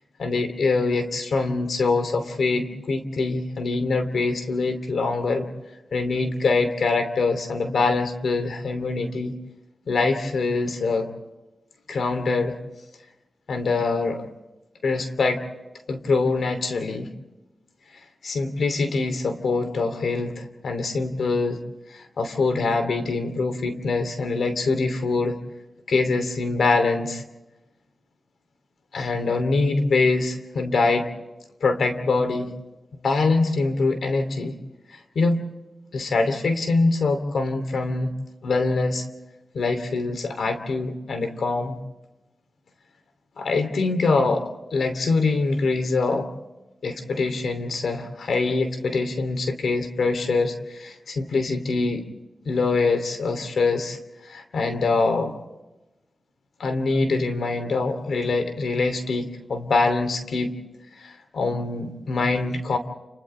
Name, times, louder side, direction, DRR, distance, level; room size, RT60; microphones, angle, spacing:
voice 1, 0.2-5.5 5.9-9.3 9.9-11.1 11.9-12.6 13.5-14.2 14.8-15.4 15.9-17.1 18.2-21.6 21.9-25.4 25.9-27.2 28.9-31.1 31.6-32.5 33.0-34.5 34.9-35.5 35.9-38.1 38.4-39.0 39.5-41.8 43.4-46.3 46.8-52.0 52.4-55.3 56.6-60.5 61.0-62.8, left 3 dB, 90° left, 8 dB, 2.8 m, -24 dB
30.0 x 29.5 x 3.3 m, 1.0 s
wide cardioid pair, 80°, 0 cm